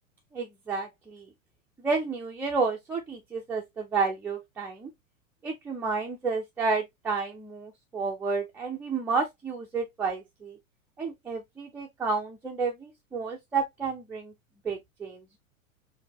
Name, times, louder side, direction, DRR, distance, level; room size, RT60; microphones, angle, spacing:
voice 1, 0.3-1.3 1.8-4.9 5.4-10.6 11.0-14.3 14.6-15.4, right 4 dB, 5° right, 0.3 m, -31 dB
5.0 x 3.1 x 2.6 m
figure-of-eight pair, 95°, 40 cm